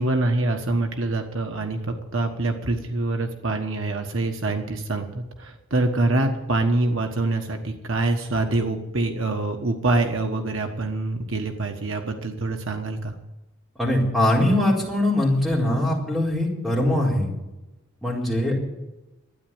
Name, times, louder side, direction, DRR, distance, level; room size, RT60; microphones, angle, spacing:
voice 1, 0.0-13.1, right 2 dB, 65° right, 5 dB, 1.3 m, -25 dB
voice 2, 13.8-17.3 18.0-18.6, left 1 dB, ahead, -5 dB, 4.3 m, -22 dB
12.5 x 9.6 x 8.9 m, 1.0 s
head